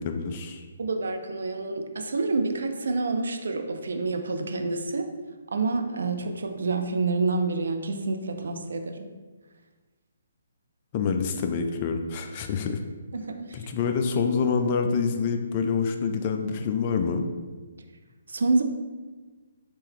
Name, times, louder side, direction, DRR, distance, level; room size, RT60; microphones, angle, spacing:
voice 1, 0.0-0.6 10.9-12.8 13.5-17.3, left 5 dB, 35° left, 5 dB, 0.3 m, -26 dB
voice 2, 0.8-5.1 5.5-9.1 13.1-13.6 18.3-18.6, right 3 dB, 65° right, 5 dB, 0.4 m, -28 dB
3.2 x 3.0 x 3.5 m, 1.4 s
figure-of-eight pair, 135°, 0 cm